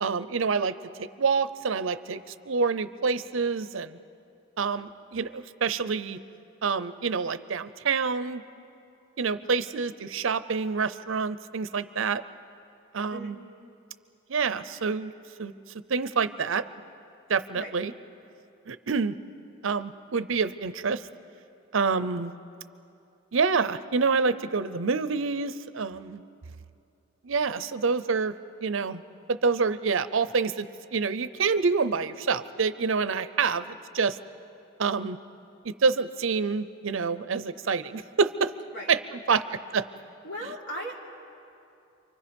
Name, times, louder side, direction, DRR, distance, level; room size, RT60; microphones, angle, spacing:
voice 1, 0.0-4.0 4.6-6.2 6.6-8.4 9.2-12.2 12.9-13.4 14.3-15.1 15.4-15.5 15.9-16.6 17.3-17.9 18.7-19.1 19.6-21.0 21.7-22.3 23.3-26.2 27.2-28.3 28.6-29.0 29.3-34.2 34.8-35.2 35.6-38.5 38.9-39.4 39.7-39.8 40.4-40.5, right 5 dB, 65° right, 13 dB, 0.6 m, -27 dB
voice 2, 40.2-40.9, equal, 55° left, -2 dB, 3.5 m, -37 dB
29.5 x 24.5 x 5.3 m, 2.6 s
head